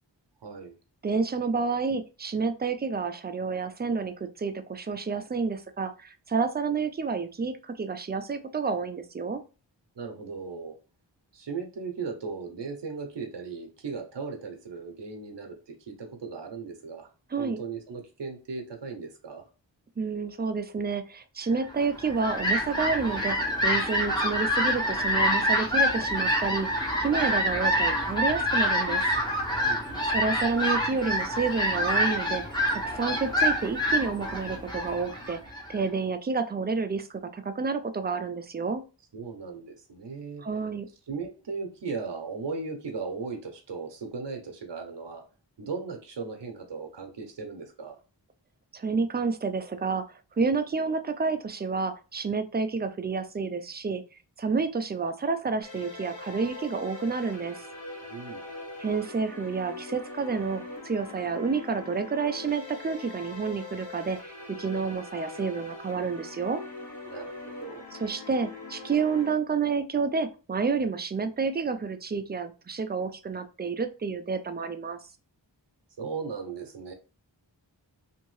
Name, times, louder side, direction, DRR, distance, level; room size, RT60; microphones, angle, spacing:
voice 1, 0.4-0.7 10.0-10.8 11.3-17.1 17.4-19.5 29.6-30.1 39.1-40.4 41.1-45.2 45.6-48.0 58.1-58.5 67.1-67.8 76.0-76.9, right 4 dB, 70° right, 4 dB, 0.7 m, -37 dB
voice 2, 1.0-9.4 17.3-17.6 20.0-29.1 29.6-29.8 30.1-32.4 32.7-35.4 35.7-37.1 37.3-38.8 40.4-40.9 48.7-54.0 54.4-57.6 58.8-66.6 67.9-75.0, right 4 dB, 25° right, 9 dB, 0.3 m, -29 dB
Fowl, 21.8-35.8, equal, 10° left, 0.9 m, -26 dB
sound 1, 55.6-69.3, left 3 dB, 40° left, 1.3 m, -42 dB
2.7 x 2.6 x 3.1 m, 0.34 s
wide cardioid pair, 50°, 45 cm